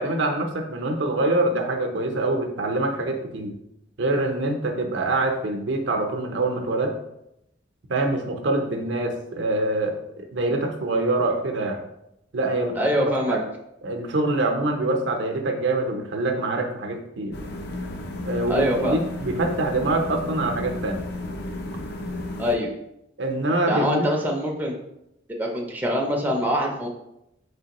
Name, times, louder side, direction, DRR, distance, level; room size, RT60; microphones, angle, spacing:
voice 1, 0.0-3.5 4.0-6.9 7.9-9.9 10.3-11.8 12.3-12.8 13.0-13.4 13.8-17.4 18.2-21.0 23.2-24.2, right 2 dB, 65° right, 4 dB, 0.6 m, -25 dB
voice 2, 12.8-13.4 18.5-19.0 22.4-22.7 23.7-24.8 25.3-26.9, equal, 10° right, -1 dB, 0.4 m, -24 dB
sound 1, 17.3-22.6, left 1 dB, 55° left, 0.5 m, -33 dB
4.4 x 3.3 x 2.9 m, 0.83 s
head